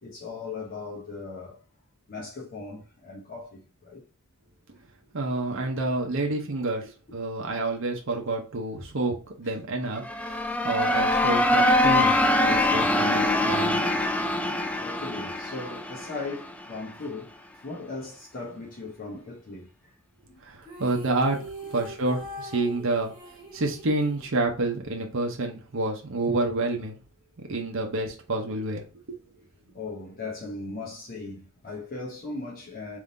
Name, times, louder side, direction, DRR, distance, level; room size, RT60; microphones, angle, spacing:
voice 1, 0.0-1.6 2.1-4.0 14.8-17.3 17.6-19.7 21.6-21.7 29.7-33.0, left 3 dB, 40° left, 0.9 m, -38 dB
voice 2, 5.1-6.8 7.1-10.4 10.6-12.1 12.4-13.9 20.4-23.1 23.5-27.0 27.5-28.8, right 2 dB, 65° right, 0.8 m, -28 dB
sound 1, 10.0-16.7, left 1 dB, 5° left, 0.3 m, -24 dB
sound 2, 20.6-24.9, left 1 dB, 25° right, 1.3 m, -42 dB
3.6 x 2.7 x 3.9 m
head